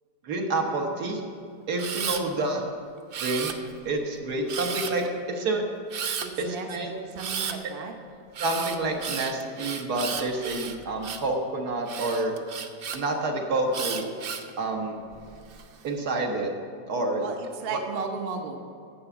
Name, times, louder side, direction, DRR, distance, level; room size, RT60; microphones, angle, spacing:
voice 1, 0.2-1.2 1.7-2.6 3.2-3.5 3.9-5.6 6.4-6.9 8.4-12.3 12.9-14.1 14.6-15.0 15.8-16.5 16.9-17.2 17.7-17.8, right 2 dB, 65° right, 1 dB, 1.7 m, -28 dB
Camera, 1.8-2.2 3.1-3.9 4.5-5.1 5.9-6.3 7.2-7.6 8.3-11.3 11.9-13.0 13.7-14.5 15.1-15.6, right 6 dB, 85° right, 0.5 m, -33 dB
voice 2, 6.2-7.9 17.2-18.6, right 4 dB, 45° right, 3 dB, 0.9 m, -35 dB
8.5 x 6.9 x 8.1 m, 2.4 s
omnidirectional pair, 1.8 m